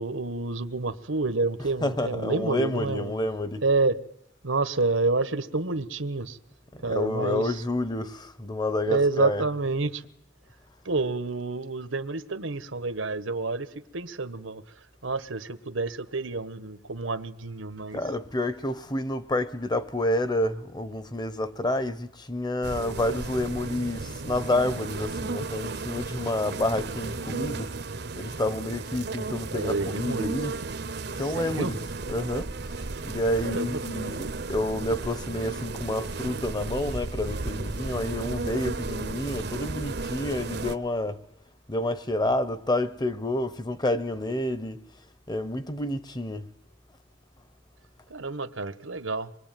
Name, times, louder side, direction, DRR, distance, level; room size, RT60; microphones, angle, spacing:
voice 1, 0.0-3.1 3.6-4.0 4.4-6.4 6.8-7.4 8.8-10.0 10.8-14.6 15.0-18.0 29.5-30.3 31.3-31.7 33.4-33.8 48.1-49.3, right 3 dB, 80° right, 1.4 m, -28 dB
voice 2, 1.8-3.6 6.7-9.4 17.9-27.8 28.2-30.6 31.1-31.8 32.1-41.2 41.7-44.9 45.3-46.5, left 1 dB, 20° left, 1.1 m, -29 dB
sound 1, 22.6-40.8, right 3 dB, 55° right, 1.0 m, -34 dB
25.5 x 22.0 x 9.2 m
head